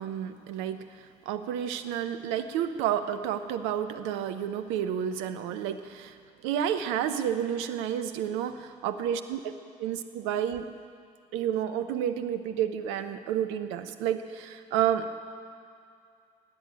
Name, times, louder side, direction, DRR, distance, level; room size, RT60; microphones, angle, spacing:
voice 1, 0.0-6.2 6.4-9.5 9.8-10.7 11.3-15.1, right 9 dB, 65° right, 10 dB, 0.9 m, -30 dB
16.0 x 10.0 x 8.8 m, 2.4 s
figure-of-eight pair, 50°, 21 cm